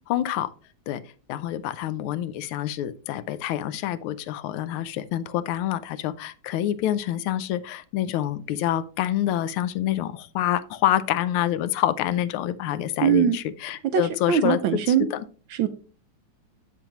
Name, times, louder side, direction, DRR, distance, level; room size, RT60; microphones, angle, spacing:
voice 1, 0.1-0.5 0.9-1.0 1.3-15.2, left 12 dB, 90° left, 15 dB, 1.5 m, -27 dB
voice 2, 13.0-13.4 13.9-15.1 15.5-15.7, right 9 dB, 75° right, 10 dB, 1.3 m, -21 dB
7.6 x 6.9 x 3.0 m, 0.38 s
omnidirectional pair, 2.3 m